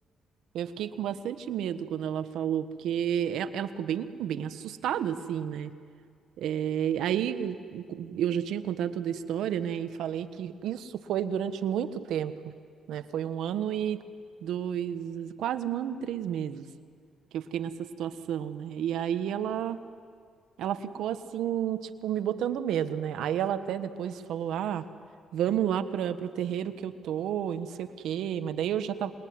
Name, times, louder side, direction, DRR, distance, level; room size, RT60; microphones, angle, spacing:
voice 1, 0.5-5.7 6.4-12.3 12.9-14.0 14.4-16.7 17.3-19.8 20.6-24.8 25.3-29.1, right 9 dB, 80° right, 10 dB, 1.3 m, -31 dB
27.5 x 21.5 x 9.6 m, 2.1 s
cardioid pair, 90°, 0 cm